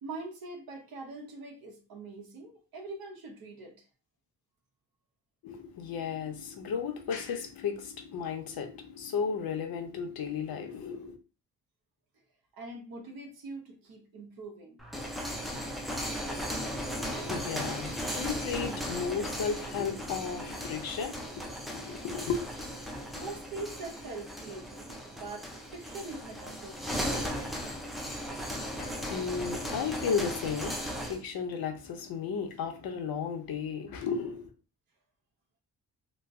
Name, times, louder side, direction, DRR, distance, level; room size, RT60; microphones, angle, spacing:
voice 1, 0.0-3.8 12.5-14.8 23.1-27.2, right 3 dB, 75° right, 1.0 m, -43 dB
voice 2, 5.4-11.2 16.9-22.4 28.7-34.5, left 6 dB, 75° left, 0.8 m, -34 dB
sound 1, 14.8-31.2, equal, ahead, 0.4 m, -37 dB
3.1 x 2.1 x 3.5 m
wide cardioid pair, 160°, 36 cm